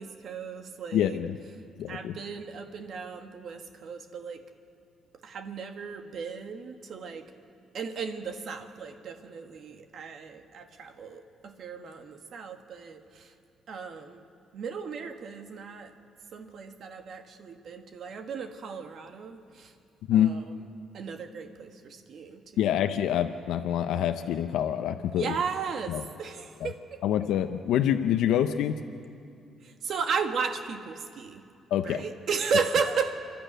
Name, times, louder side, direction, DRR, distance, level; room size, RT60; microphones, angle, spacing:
voice 1, 0.0-1.2 1.9-4.4 5.2-7.2 7.7-13.3 13.7-14.2 14.5-15.9 16.3-19.7 20.1-20.5 20.9-22.4 25.2-27.0 29.6-31.4 31.8-33.2, right 5 dB, 65° right, 6 dB, 1.5 m, -35 dB
voice 2, 0.9-1.4 1.8-2.2 20.1-20.3 22.6-25.3 25.9-26.0 27.0-28.8 31.7-32.0, left 10 dB, 85° left, 7 dB, 0.6 m, -26 dB
28.0 x 12.0 x 9.1 m, 2.5 s
cardioid pair, 90°, 0 cm